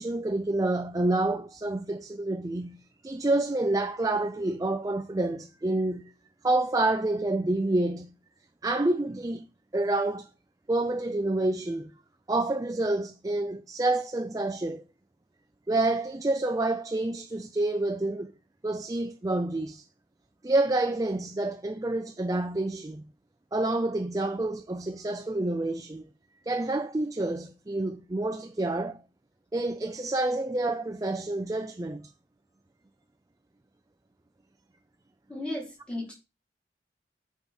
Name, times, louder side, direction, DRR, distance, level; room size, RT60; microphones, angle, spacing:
voice 1, 0.0-6.1 6.4-8.1 8.6-9.5 9.7-10.3 10.7-11.9 12.3-14.8 15.7-18.3 18.6-19.8 20.4-23.1 23.5-26.1 26.5-29.0 29.5-32.0, right 2 dB, 20° right, 0.4 m, -28 dB
voice 2, 35.3-36.1, left 1 dB, 5° left, 3.8 m, -35 dB
8.3 x 4.8 x 4.1 m
head